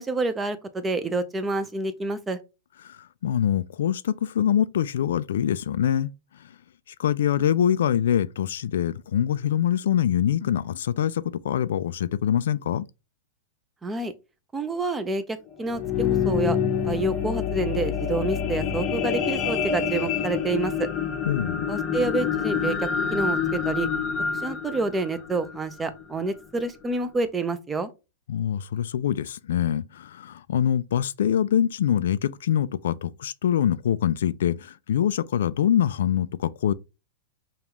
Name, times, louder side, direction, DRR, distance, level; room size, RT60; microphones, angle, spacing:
voice 1, 0.0-2.4 13.8-14.1 14.5-16.6 16.8-20.9 21.7-23.9 24.3-27.9, right 3 dB, 10° right, 0.5 m, -28 dB
voice 2, 2.8-6.1 6.4-6.5 7.0-12.9 21.3-21.6 28.3-36.7, left 10 dB, 80° left, 0.3 m, -24 dB
sound 1, 15.5-26.0 26.6-26.7, left 7 dB, 30° left, 0.7 m, -27 dB
5.3 x 2.3 x 2.9 m
supercardioid pair, 145°, 0 cm